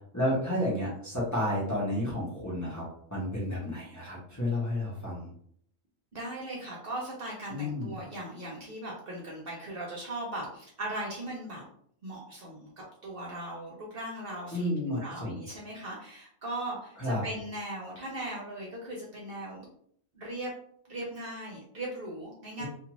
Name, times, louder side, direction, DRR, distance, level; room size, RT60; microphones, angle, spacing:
voice 1, 0.1-2.8 3.1-5.3 7.5-7.9 14.5-15.4 17.0-17.2 22.6-22.7, left 1 dB, 15° left, -7 dB, 0.8 m, -31 dB
voice 2, 6.1-11.6 12.0-12.7 13.0-19.6 20.1-20.5 20.9-22.6, right 1 dB, 55° right, -3 dB, 0.8 m, -38 dB
2.5 x 2.5 x 3.0 m, 0.63 s
omnidirectional pair, 1.3 m